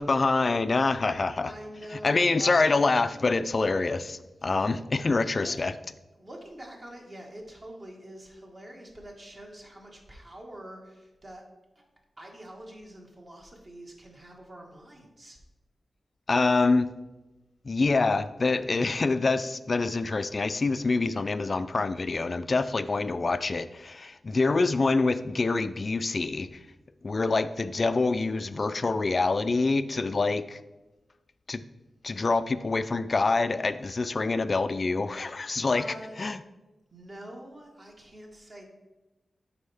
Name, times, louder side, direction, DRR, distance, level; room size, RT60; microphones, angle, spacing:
voice 1, 0.0-1.5 2.0-5.7 16.3-16.9 17.6-26.5 27.0-30.6 31.5-31.6 32.0-35.8 36.2-36.4, left 3 dB, 40° left, 13 dB, 0.3 m, -26 dB
voice 2, 1.4-2.8 4.4-4.8 5.3-5.5 6.1-11.4 11.7-11.8 12.2-15.4 35.7-36.2 36.9-38.6, right 1 dB, 35° right, 0 dB, 1.6 m, -45 dB
10.5 x 4.2 x 3.4 m, 1.1 s
wide cardioid pair, 105°, 0 cm